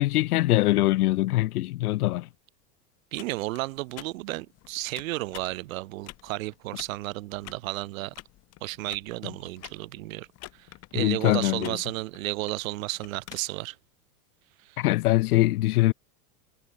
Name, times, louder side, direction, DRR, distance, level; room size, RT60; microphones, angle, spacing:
voice 1, 0.0-2.3 9.2-9.3 10.9-11.8 14.8-15.9, left 17 dB, 75° left, 1.2 m, -23 dB
voice 2, 3.1-8.1 8.6-10.3 10.5-13.8 14.6-14.8, right 19 dB, 60° right, 1.8 m, -33 dB
sound 1, 3.2-13.4, left 17 dB, 35° left, 5.7 m, -49 dB
supercardioid pair, 155°, 45 cm